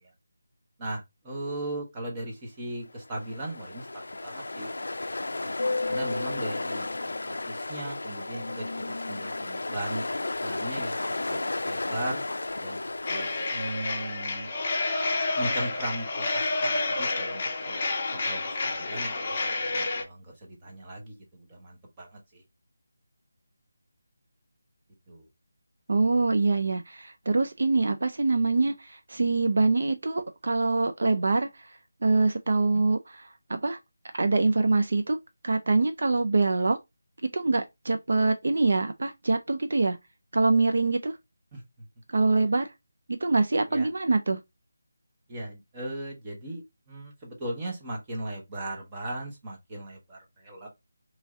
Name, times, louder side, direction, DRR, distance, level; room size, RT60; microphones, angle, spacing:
voice 1, 0.8-3.9 4.2-4.7 5.1-5.5 5.9-10.0 10.4-11.0 11.3-12.2 12.6-12.8 13.1-14.5 15.3-17.8 18.1-22.4 25.1-25.2 32.7-32.8 41.5-41.6 42.3-42.5 43.7-43.9 45.3-46.6 46.9-50.7, right 1 dB, 15° right, 0.9 m, -38 dB
Ocean, 3.0-14.1, left 2 dB, 80° left, 0.4 m, -33 dB
sound 1, 13.1-20.0, left 3 dB, 25° left, 0.7 m, -29 dB
voice 2, 25.9-31.5 32.0-33.8 34.1-35.2 35.4-36.8 37.3-40.0 40.3-41.1 42.1-42.7 43.2-44.4, right 3 dB, 60° right, 0.4 m, -24 dB
3.1 x 2.7 x 3.5 m
figure-of-eight pair, 175°, 0 cm